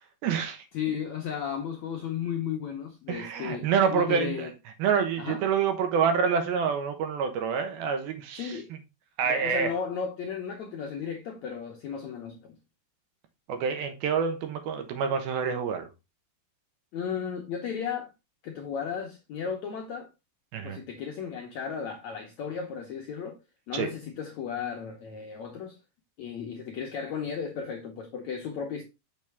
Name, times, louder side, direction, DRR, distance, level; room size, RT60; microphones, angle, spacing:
voice 1, 0.2-0.6 3.1-4.5 4.8-8.6 9.2-9.7 13.5-15.9 20.5-20.8 23.7-23.9, right 6 dB, 75° right, 3.0 m, -27 dB
voice 2, 0.7-4.5 5.2-5.4 8.4-8.7 9.2-12.6 16.9-18.1 18.4-20.1 20.6-23.4 23.7-25.8 26.2-28.8, left 7 dB, 75° left, 1.7 m, -34 dB
6.6 x 6.2 x 3.4 m
omnidirectional pair, 4.5 m